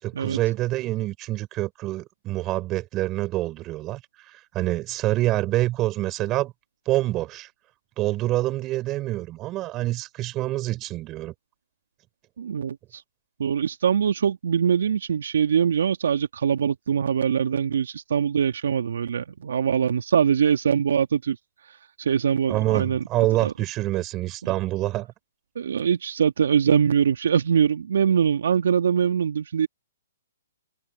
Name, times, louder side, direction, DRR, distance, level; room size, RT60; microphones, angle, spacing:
voice 1, 0.0-4.0 4.3-6.5 6.9-7.5 8.0-11.3 22.5-25.1, right 16 dB, 25° right, 6.3 m, -26 dB
voice 2, 12.4-13.0 13.4-21.4 22.0-23.0 23.4-23.5 24.4-24.5 25.6-29.7, right 7 dB, 65° right, 2.5 m, -23 dB
hypercardioid pair, 135°, 0 cm